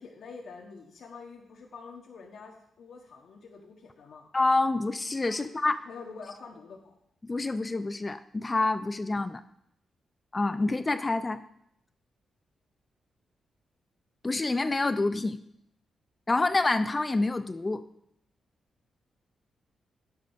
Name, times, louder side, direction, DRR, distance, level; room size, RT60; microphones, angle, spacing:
voice 1, 0.0-4.3 5.3-5.5 5.8-6.9, left 4 dB, 70° left, -1 dB, 1.5 m, -46 dB
voice 2, 4.3-5.8 7.2-9.4 10.3-11.4 14.2-15.4 16.3-17.8, left 2 dB, 30° left, 11 dB, 0.6 m, -27 dB
9.7 x 8.5 x 5.5 m, 0.74 s
cardioid pair, 60°, 0 cm